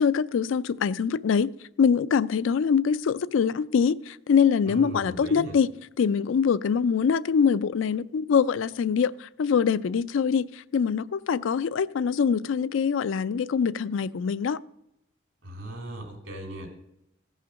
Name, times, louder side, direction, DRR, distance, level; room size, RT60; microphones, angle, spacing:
voice 1, 0.0-1.5 1.8-5.7 6.0-14.6, left 6 dB, 70° left, 0.4 m, -24 dB
voice 2, 4.7-5.6 15.4-16.7, right 1 dB, 70° right, 2.6 m, -37 dB
15.0 x 5.7 x 6.3 m
head